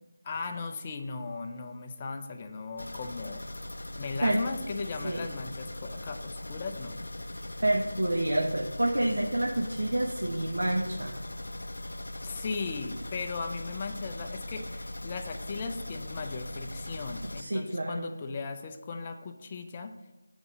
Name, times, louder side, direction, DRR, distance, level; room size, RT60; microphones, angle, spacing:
voice 1, 0.2-3.4 4.0-7.0 12.2-19.9, left 4 dB, 20° left, 5 dB, 0.5 m, -37 dB
sound 1, 2.8-17.4, left 1 dB, 90° left, 0.4 m, -40 dB
voice 2, 7.3-11.2 17.4-18.1, right 1 dB, 90° right, 1 dB, 0.7 m, -28 dB
7.2 x 4.0 x 4.8 m, 1.0 s
figure-of-eight pair, 170°, 0 cm